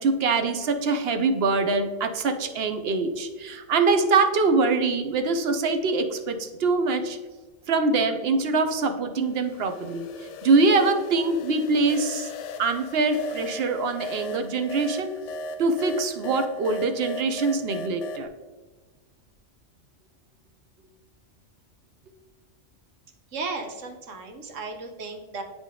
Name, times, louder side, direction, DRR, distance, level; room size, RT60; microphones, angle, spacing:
voice 1, 0.0-7.2 7.7-10.1 10.4-12.3 12.6-15.1 15.6-18.3, right 3 dB, 60° right, 7 dB, 0.9 m, -24 dB
sound 1, 9.2-18.3, left 2 dB, 80° left, 1.0 m, -38 dB
voice 2, 23.3-25.4, right 3 dB, 90° right, 4 dB, 1.3 m, -35 dB
9.6 x 3.8 x 3.7 m, 1.3 s
omnidirectional pair, 1.3 m